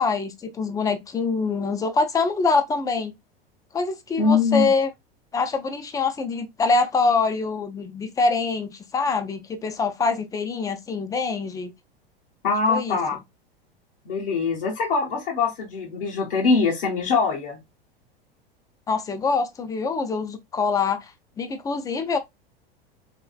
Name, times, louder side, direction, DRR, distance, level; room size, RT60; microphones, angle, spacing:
voice 1, 0.0-3.2 3.7-4.9 5.3-11.7 12.7-13.0 18.9-21.1 21.4-22.2, left 4 dB, 10° left, 0.4 m, -24 dB
voice 2, 4.2-4.7 12.4-13.2 14.1-17.6, left 4 dB, 65° left, 1.0 m, -23 dB
3.5 x 3.1 x 2.3 m
figure-of-eight pair, 90°, 30 cm